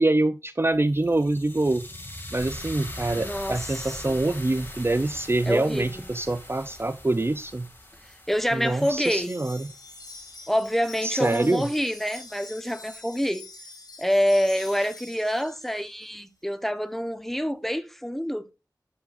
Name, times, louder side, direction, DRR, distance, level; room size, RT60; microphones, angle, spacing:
voice 1, 0.0-1.9 2.3-7.7 8.5-9.7 11.0-11.7, right 2 dB, 35° right, 0.5 m, -25 dB
sound 1, 0.6-10.8, left 1 dB, 30° left, 2.4 m, -41 dB
voice 2, 3.1-4.2 5.5-6.0 8.0-9.4 10.5-13.5 14.0-18.5, equal, 5° left, 1.1 m, -27 dB
Wind chime, 8.6-16.1, left 2 dB, 60° left, 4.4 m, -45 dB
12.0 x 5.8 x 2.5 m
wide cardioid pair, 40°, 7 cm